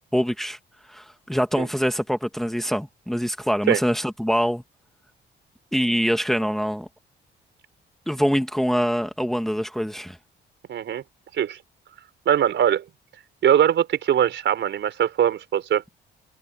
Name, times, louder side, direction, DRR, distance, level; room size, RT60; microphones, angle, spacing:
voice 1, 0.1-0.6 0.9-4.6 5.7-6.9 8.1-10.2, equal, ahead, 2.0 m, -24 dB
voice 2, 10.7-11.0 11.4-11.6 12.2-12.8 13.4-15.8, right 10 dB, 65° right, 4.8 m, -21 dB
cardioid pair, 90°, 20 cm